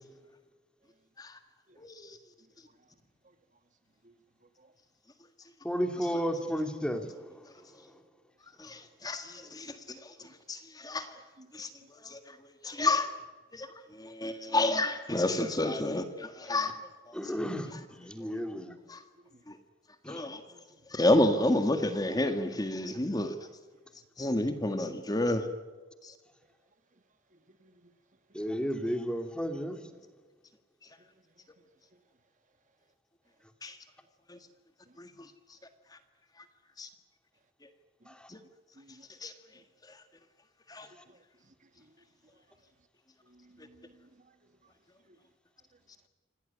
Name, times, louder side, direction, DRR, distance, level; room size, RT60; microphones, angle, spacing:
voice 1, 1.8-2.2 8.6-10.1 10.5-11.2 11.5-11.7 12.0-12.4 12.6-13.1 13.5-13.7 13.9-16.8 17.2-17.3 18.9-19.0 19.5-19.6 20.1-20.4 20.9-23.3 24.2-25.5 26.0-26.1 33.6-33.8 34.3-34.4 35.0-35.1 36.8-36.9 38.3-38.4 39.2-39.3 40.7-40.9, left 1 dB, 20° left, 1.7 m, -30 dB
voice 2, 5.6-7.4 7.9-8.0 17.1-18.7 20.0-20.2 28.3-29.9 38.1-38.3, equal, 5° left, 2.8 m, -33 dB
voice 3, 11.4-11.9 19.2-19.4 20.5-20.6 27.3-27.9 28.3-28.4 31.6-31.7 31.9-32.0 34.9-35.0 38.0-38.1 38.7-39.1 39.5-39.6 41.1-42.0 43.2-44.4 45.1-45.2, right 1 dB, 40° right, 1.8 m, -61 dB
27.5 x 17.5 x 9.8 m
head